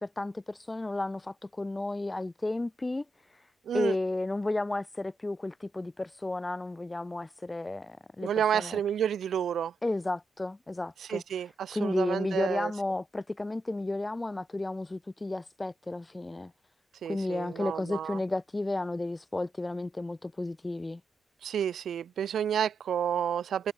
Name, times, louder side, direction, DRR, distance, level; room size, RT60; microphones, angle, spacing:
voice 1, 0.0-8.8 9.8-16.5 17.1-21.0, left 2 dB, 20° left, 0.6 m, -33 dB
voice 2, 3.7-4.0 8.2-9.7 11.1-12.7 17.0-18.2 21.4-23.7, right 9 dB, 85° right, 0.4 m, -30 dB
cardioid pair, 70°, 0 cm